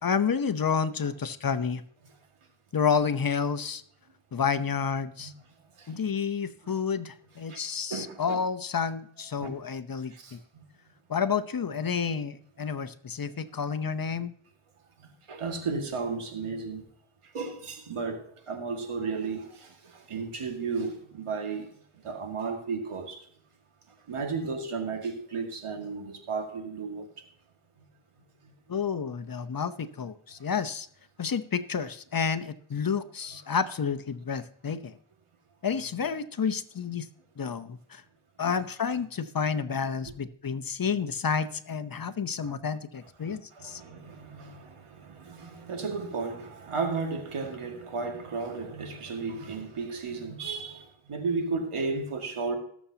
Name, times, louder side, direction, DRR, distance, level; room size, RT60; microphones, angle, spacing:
voice 1, 0.0-1.8 2.7-3.8 4.3-5.3 5.9-10.4 11.1-14.3 28.7-30.9 31.2-34.9 35.6-37.1 37.4-38.0 38.4-43.8, left 6 dB, 45° left, 0.8 m, -30 dB
voice 2, 7.9-8.4 9.4-9.5 10.1-10.4 15.3-16.8 17.3-21.7 22.0-23.2 24.1-27.1 38.4-38.5 42.4-42.5 43.2-52.6, right 4 dB, 85° right, 2.1 m, -34 dB
20.0 x 7.2 x 2.8 m
cardioid pair, 75°, 50 cm